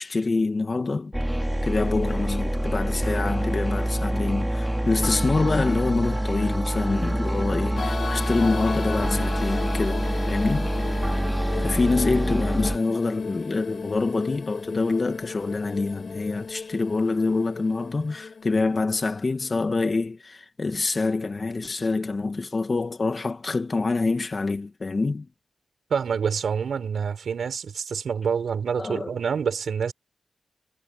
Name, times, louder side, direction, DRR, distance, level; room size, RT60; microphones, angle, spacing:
voice 1, 0.0-10.7 11.6-25.3 28.8-29.1, left 3 dB, 40° left, 2.3 m, -26 dB
sound 1, 1.1-12.8, right 1 dB, 5° right, 3.6 m, -26 dB
sound 2, 7.8-19.6, left 5 dB, 60° left, 6.1 m, -35 dB
voice 2, 25.9-29.9, right 6 dB, 75° right, 5.8 m, -27 dB
cardioid pair, 85°, 0 cm